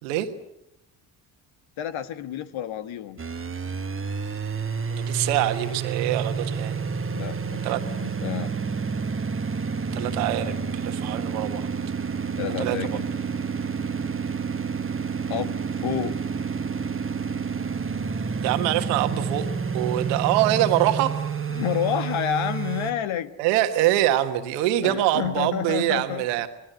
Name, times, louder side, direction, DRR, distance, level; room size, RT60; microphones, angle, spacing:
voice 1, 1.8-3.2 7.1-8.5 12.4-13.1 15.3-16.2 21.5-23.3 24.8-26.2, left 10 dB, 70° left, 12 dB, 1.6 m, -29 dB
sound 1, 3.2-22.9, right 5 dB, 25° right, 1.3 m, -29 dB
voice 2, 4.9-6.7 7.6-7.8 9.9-11.7 12.4-13.0 18.4-21.2 23.4-26.5, right 14 dB, 85° right, 8 dB, 1.5 m, -24 dB
26.5 x 19.0 x 8.1 m, 0.82 s
hypercardioid pair, 45°, 49 cm